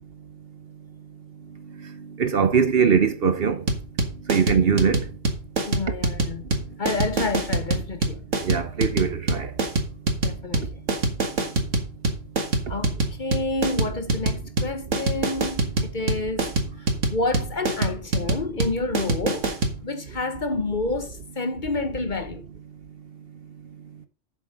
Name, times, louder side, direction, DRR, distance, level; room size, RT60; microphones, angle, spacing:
voice 1, 1.8-3.6 4.3-5.1 8.4-9.5, right 6 dB, 55° right, 1.0 m, -21 dB
sound 1, 3.7-19.8, right 3 dB, 90° right, 2.1 m, -24 dB
voice 2, 5.7-6.5 6.8-8.2 10.2-10.8 12.7-19.6 19.8-22.4, left 3 dB, 45° left, 1.1 m, -29 dB
7.7 x 7.6 x 5.3 m
omnidirectional pair, 1.2 m